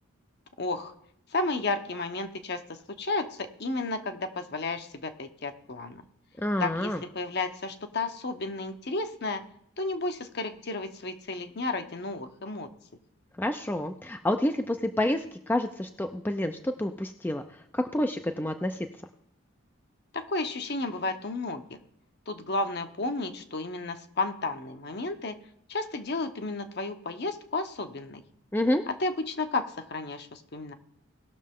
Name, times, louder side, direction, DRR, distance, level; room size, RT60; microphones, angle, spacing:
voice 1, 0.6-0.9 1.3-6.0 6.6-9.4 9.8-12.7 20.1-21.8 22.3-25.4 25.7-28.2 28.9-30.7, left 3 dB, 50° left, 8 dB, 0.9 m, -32 dB
voice 2, 6.4-7.0 13.4-18.9 28.5-28.8, left 1 dB, 10° left, 7 dB, 0.4 m, -28 dB
18.5 x 6.5 x 3.6 m, 0.71 s
head